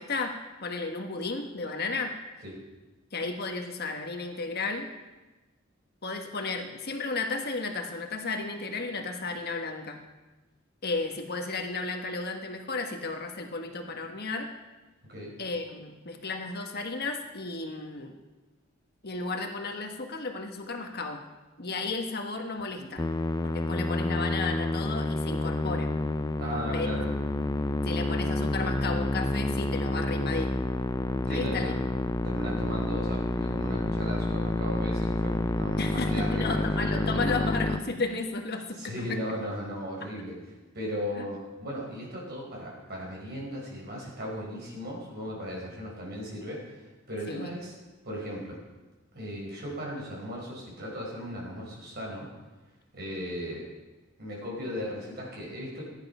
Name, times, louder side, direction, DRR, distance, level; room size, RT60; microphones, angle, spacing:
voice 1, 0.0-2.1 3.1-4.9 6.0-10.0 10.8-14.5 15.4-18.1 19.0-21.2 21.6-23.0 23.4-25.9 26.7-26.9 27.8-30.6 31.3-31.8 35.8-39.2 40.0-40.1 41.2-41.3 47.3-47.5, left 3 dB, 50° left, 4 dB, 1.4 m, -33 dB
Musical instrument, 23.0-37.8, left 2 dB, 20° left, 0.5 m, -29 dB
voice 2, 26.4-27.1 31.3-31.8 32.2-37.3 38.8-40.3 40.7-47.7 48.0-48.6 49.1-52.3 52.9-53.7 54.2-55.8, equal, 50° right, -2 dB, 4.8 m, -37 dB
14.5 x 10.5 x 5.6 m, 1.1 s
head